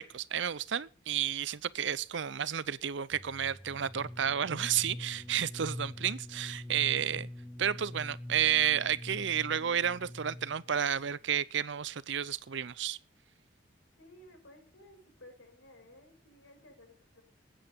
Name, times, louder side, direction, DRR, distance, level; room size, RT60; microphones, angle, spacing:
voice 1, 0.0-7.3 7.6-13.0, right 9 dB, 70° right, 0.6 m, -31 dB
sound 1, 3.1-10.8, left 1 dB, 5° left, 0.8 m, -44 dB
voice 2, 14.0-17.2, left 1 dB, 90° left, 5.9 m, -56 dB
20.0 x 8.7 x 5.2 m
head